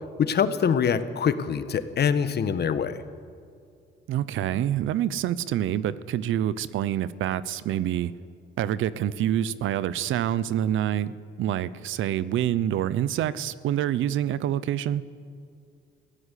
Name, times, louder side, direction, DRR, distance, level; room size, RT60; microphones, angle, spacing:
voice 1, 0.2-2.9, left 7 dB, 55° left, 11 dB, 1.4 m, -24 dB
voice 2, 4.1-8.1 8.6-11.1 11.4-15.0, right 11 dB, 80° right, 17 dB, 0.8 m, -26 dB
23.0 x 16.0 x 8.5 m, 2.4 s
cardioid pair, 90°, 20 cm